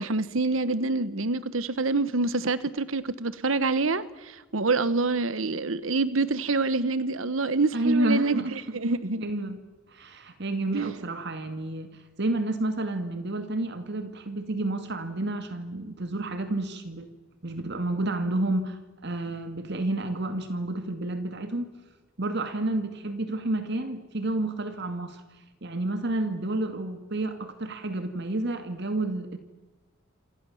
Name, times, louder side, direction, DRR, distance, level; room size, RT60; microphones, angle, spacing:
voice 1, 0.0-8.4 8.7-9.2 10.7-10.9, right 3 dB, 80° right, 15 dB, 1.2 m, -26 dB
voice 2, 7.7-8.5 9.2-9.6 9.9-17.1 17.4-21.7 22.2-25.2 25.6-29.4, right 2 dB, 60° right, 8 dB, 2.1 m, -30 dB
28.5 x 26.0 x 7.2 m, 1.2 s
head